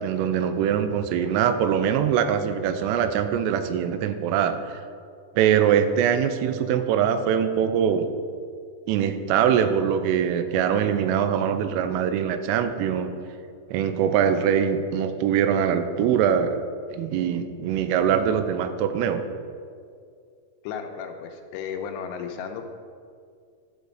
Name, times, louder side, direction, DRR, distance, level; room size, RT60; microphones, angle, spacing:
voice 1, 0.0-4.6 5.4-8.1 8.9-13.1 13.7-16.6 16.9-19.2, right 8 dB, 85° right, 9 dB, 3.3 m, -23 dB
voice 2, 20.6-22.6, left 7 dB, 85° left, 4 dB, 3.2 m, -34 dB
12.0 x 5.2 x 6.3 m, 2.3 s
omnidirectional pair, 5.7 m